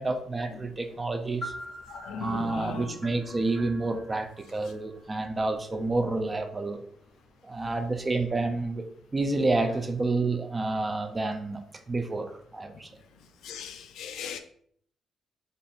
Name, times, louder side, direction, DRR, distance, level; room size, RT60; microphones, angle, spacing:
voice 1, 0.0-1.5 2.2-6.8 7.4-11.6 11.9-12.9, right 2 dB, 25° right, 0.4 m, -29 dB
sound 1, 1.4-5.3, right 1 dB, 5° right, 1.3 m, -43 dB
voice 2, 1.9-2.9 13.4-14.4, left 6 dB, 80° left, 0.4 m, -38 dB
2.5 x 2.5 x 4.0 m
cardioid pair, 90°, 0 cm